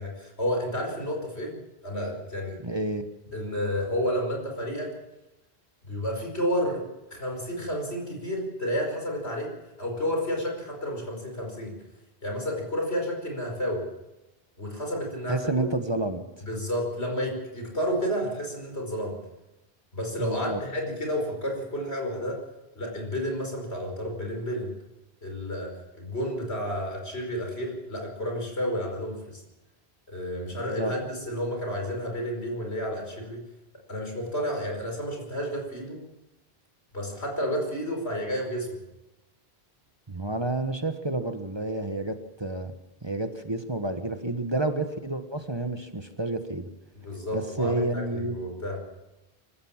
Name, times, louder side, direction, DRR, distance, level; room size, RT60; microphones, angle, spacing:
voice 1, 0.0-1.6 1.8-2.6 3.3-4.9 5.8-9.5 9.8-11.8 12.2-13.8 14.6-15.6 16.5-19.2 19.9-22.4 22.8-24.7 25.2-29.4 30.1-33.4 33.9-36.0 36.9-38.8 47.0-48.8, equal, 85° left, 1 dB, 5.3 m, -31 dB
voice 2, 2.6-3.1 15.3-16.2 20.2-20.6 30.5-30.9 40.1-42.7 43.0-46.7 47.3-48.4, right 2 dB, 25° right, 7 dB, 1.3 m, -30 dB
24.5 x 14.5 x 7.3 m, 0.98 s
omnidirectional pair, 1.1 m